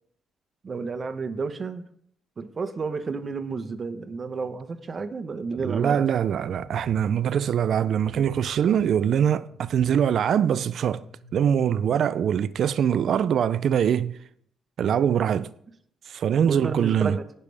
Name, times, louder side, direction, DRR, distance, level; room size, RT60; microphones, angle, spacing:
voice 1, 0.6-1.8 2.4-6.0 12.2-12.3 16.5-17.3, right 4 dB, 40° right, 1.1 m, -31 dB
voice 2, 5.5-11.0 11.3-14.2 14.8-15.5 16.1-17.2, right 8 dB, 65° right, 0.4 m, -23 dB
sound 1, 6.4-11.4, left 2 dB, 75° left, 2.3 m, -50 dB
18.0 x 6.8 x 3.5 m
cardioid pair, 90°, 0 cm